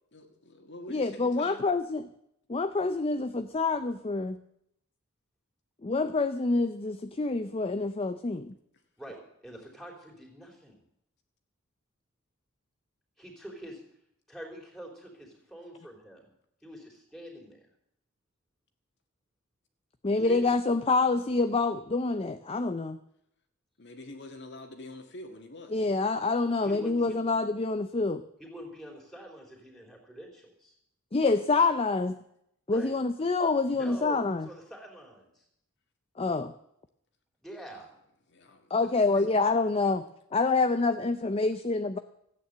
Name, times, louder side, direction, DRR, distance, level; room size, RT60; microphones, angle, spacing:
voice 1, 0.1-1.6 23.8-25.9 37.7-37.9 38.3-39.3, left 1 dB, 55° left, 4 dB, 1.7 m, -46 dB
voice 2, 0.9-2.1 2.5-4.4 5.8-8.5 20.0-23.0 25.7-28.2 31.1-32.2 32.7-34.5 36.2-36.5 38.7-40.0 40.3-42.0, left 3 dB, 25° left, 10 dB, 0.5 m, -27 dB
voice 3, 9.0-10.8 13.2-13.8 14.3-16.3 16.6-17.7 20.1-20.5 26.6-27.3 28.4-30.7 32.7-33.0 33.7-35.4 37.4-37.9 38.8-39.3, right 1 dB, ahead, 0 dB, 3.5 m, -45 dB
14.5 x 9.2 x 8.0 m, 0.76 s
head